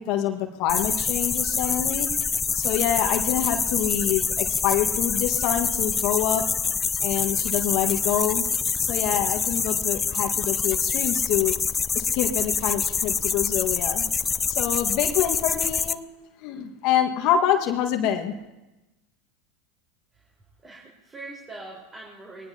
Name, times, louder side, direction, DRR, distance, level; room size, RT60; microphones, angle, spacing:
voice 1, 0.0-2.1 2.5-6.5 7.0-8.5 8.8-11.5 11.9-14.1 14.5-16.0 16.4-18.3, left 10 dB, 50° left, 3 dB, 1.6 m, -26 dB
sound 1, 0.7-15.9, left 5 dB, 20° left, 0.6 m, -26 dB
voice 2, 20.6-22.5, right 2 dB, 20° right, -3 dB, 4.3 m, -42 dB
22.0 x 19.5 x 2.9 m, 1.0 s
hypercardioid pair, 85°, 0 cm